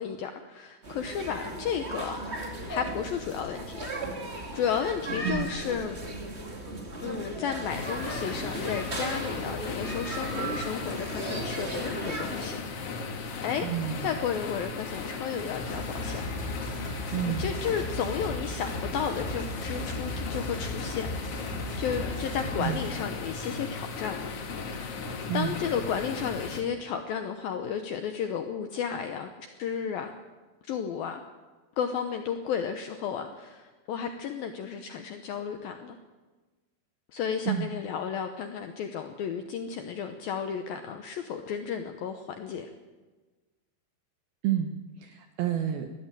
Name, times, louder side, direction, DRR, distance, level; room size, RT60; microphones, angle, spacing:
voice 1, 0.0-3.9 4.5-6.0 7.0-12.6 13.4-13.7 14.0-16.2 17.4-21.1 21.8-25.1 25.3-30.1 30.6-31.2 31.8-36.0 37.1-42.7, left 7 dB, 80° left, 7 dB, 2.1 m, -33 dB
sound 1, 0.8-12.5, right 2 dB, 45° right, 0.8 m, -36 dB
sound 2, 7.7-26.6, left 4 dB, 65° left, 1.5 m, -36 dB
voice 2, 13.6-14.1 17.1-17.5 22.6-22.8 25.3-25.5 37.5-37.7 44.4-44.7 45.0-45.9, right 10 dB, 75° right, 6 dB, 2.3 m, -29 dB
sound 3, 15.6-22.9, equal, 10° left, 4.3 m, -37 dB
20.5 x 14.0 x 9.0 m, 1.3 s
omnidirectional pair, 5.5 m